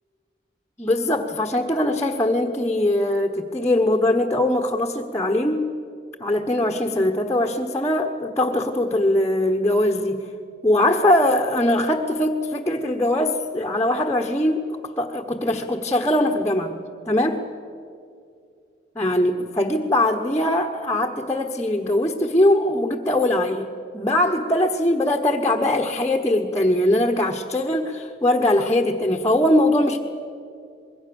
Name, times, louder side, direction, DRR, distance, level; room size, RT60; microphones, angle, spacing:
voice 1, 0.8-5.7 6.2-10.2 10.6-14.6 15.0-16.8 17.1-17.5 18.9-23.7 23.9-30.0, left 1 dB, 15° left, 1 dB, 1.1 m, -21 dB
25.5 x 22.0 x 7.0 m, 2.3 s
head